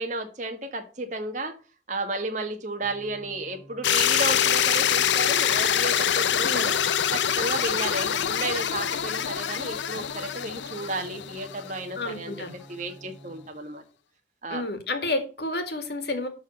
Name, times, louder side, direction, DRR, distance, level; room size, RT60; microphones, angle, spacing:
voice 1, 0.0-1.5 1.9-6.8 7.1-13.8 14.4-14.6, right 2 dB, 40° right, 1.7 m, -33 dB
sound 1, 2.8-13.5, equal, 5° right, 2.1 m, -49 dB
sound 2, 3.8-11.8, left 9 dB, 75° left, 0.6 m, -25 dB
voice 2, 12.0-12.5 14.5-16.3, left 2 dB, 60° left, 2.0 m, -30 dB
12.0 x 4.1 x 6.5 m
head